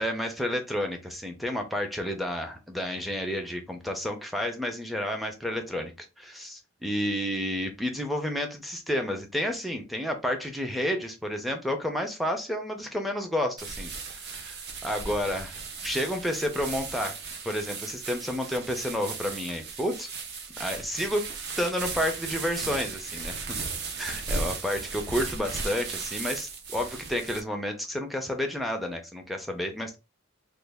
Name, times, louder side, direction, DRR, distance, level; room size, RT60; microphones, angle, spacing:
voice 1, 0.0-17.2 17.4-20.1 20.6-21.2 21.6-23.6 24.0-30.0, equal, ahead, 3 dB, 0.4 m, -31 dB
sound 1, 13.6-27.4, right 4 dB, 50° right, 0.6 m, -36 dB
3.2 x 2.2 x 3.4 m, 0.27 s
head